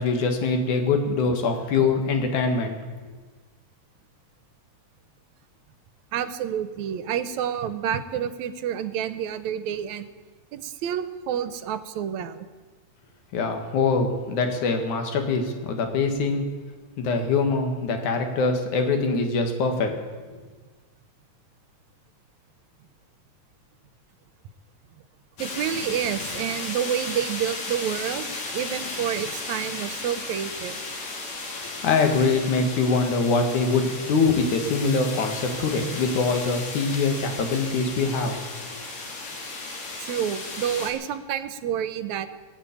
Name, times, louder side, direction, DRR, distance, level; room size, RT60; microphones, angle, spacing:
voice 1, 0.0-2.8 13.3-16.5 17.0-19.9 20.3-20.4 31.6-38.4, left 4 dB, 90° left, 5 dB, 3.1 m, -23 dB
voice 2, 6.1-10.1 10.5-12.5 25.4-30.8 40.0-42.3, right 9 dB, 80° right, 12 dB, 2.0 m, -29 dB
sound 1, 25.4-40.9, left 3 dB, 70° left, 3.6 m, -35 dB
21.0 x 7.4 x 8.5 m, 1.4 s
omnidirectional pair, 3.3 m